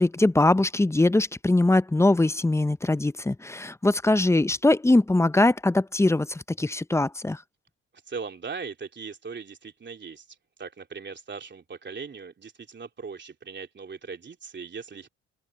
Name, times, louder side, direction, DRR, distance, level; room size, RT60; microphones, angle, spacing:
voice 1, 0.0-7.4, left 2 dB, 10° left, 0.7 m, -22 dB
voice 2, 8.1-10.2 10.6-15.1, right 5 dB, 35° right, 3.3 m, -39 dB
open air
cardioid pair, 90°, 30 cm